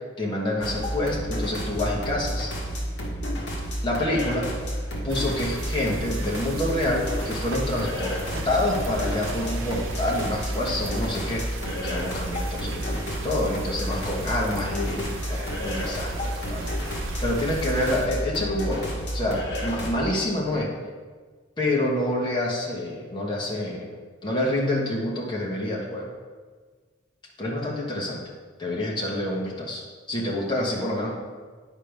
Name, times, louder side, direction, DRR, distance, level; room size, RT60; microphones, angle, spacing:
voice 1, 0.2-2.5 3.8-4.5 5.0-8.2 8.4-11.4 11.8-16.7 17.2-20.7 21.6-23.9 24.2-26.1 27.4-28.2 28.6-29.8 30.1-31.1, left 1 dB, 25° left, -4 dB, 1.3 m, -27 dB
sound 1, 0.6-20.0, equal, 60° left, 1.3 m, -31 dB
sound 2, 5.1-18.1, right 2 dB, 90° right, 0.8 m, -38 dB
9.7 x 5.1 x 3.5 m, 1.5 s
head